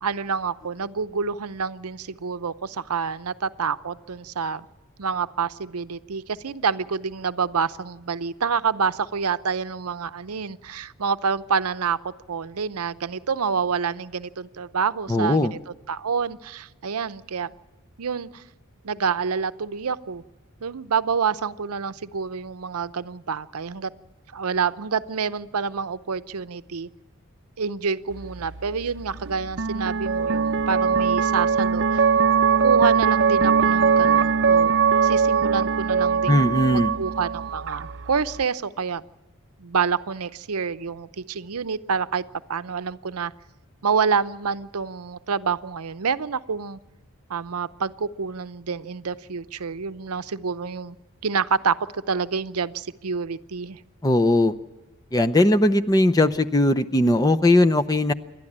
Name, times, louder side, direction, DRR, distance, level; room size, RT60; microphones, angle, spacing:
voice 1, 0.0-4.7 5.0-15.6 15.9-17.5 18.0-18.4 18.8-20.2 20.6-23.9 24.3-26.9 27.6-32.1 32.5-34.7 35.0-39.0 39.6-42.2 42.5-43.3 43.8-46.8 47.3-51.0 51.2-53.8, right 5 dB, 85° right, 14 dB, 0.7 m, -27 dB
voice 2, 15.1-15.5 36.3-36.9 54.0-54.5 55.1-58.1, left 1 dB, 15° left, 9 dB, 0.6 m, -19 dB
sound 1, 28.1-38.4, right 6 dB, 55° right, 0.6 m, -21 dB
28.5 x 12.0 x 8.7 m, 1.2 s
head